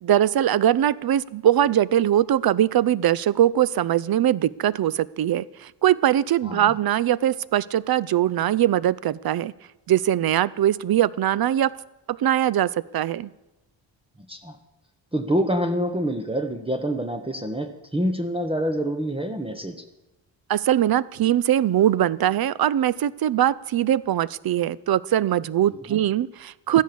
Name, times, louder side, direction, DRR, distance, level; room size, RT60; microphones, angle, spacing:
voice 1, 0.0-9.5 9.9-11.7 12.1-13.3 20.5-26.8, right 11 dB, 55° right, 21 dB, 0.6 m, -21 dB
voice 2, 6.4-6.8 14.3-14.6 15.1-19.8 25.7-26.0, equal, 10° right, 7 dB, 1.2 m, -27 dB
13.5 x 10.5 x 6.9 m, 1.1 s
cardioid pair, 70°, 45 cm